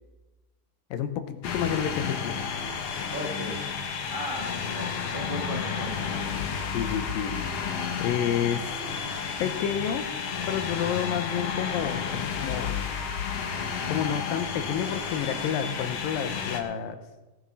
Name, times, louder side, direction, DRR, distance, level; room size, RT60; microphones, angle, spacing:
voice 1, 0.9-2.4 6.7-7.4 8.0-8.7 9.4-10.1 10.5-12.8 13.9-17.0, left 9 dB, 90° left, 9 dB, 2.6 m, -30 dB
sound 1, 1.4-16.6, left 6 dB, 60° left, 1.8 m, -31 dB
voice 2, 3.1-3.6 4.1-6.0, equal, 55° right, -1 dB, 0.5 m, -36 dB
18.0 x 7.3 x 5.4 m, 1.1 s
omnidirectional pair, 4.0 m